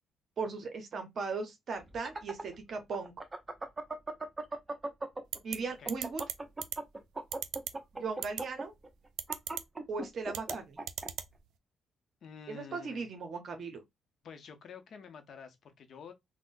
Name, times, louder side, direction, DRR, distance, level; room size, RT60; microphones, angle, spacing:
voice 1, 0.4-3.1 5.4-6.2 7.9-8.7 9.9-10.8 12.5-13.8, right 4 dB, 55° right, 0.7 m, -38 dB
sound 1, 1.8-5.4 5.7-11.1, right 2 dB, 20° right, 0.7 m, -38 dB
sound 2, 5.3-5.6 5.9-6.3 6.6-6.8 7.3-7.7 8.2-8.4 9.2-9.6 10.3-10.5 10.9-11.3, right 11 dB, 85° right, 0.3 m, -35 dB
voice 2, 12.2-13.0 14.2-16.1, left 6 dB, 60° left, 0.7 m, -49 dB
3.6 x 2.1 x 2.5 m
cardioid pair, 90°, 0 cm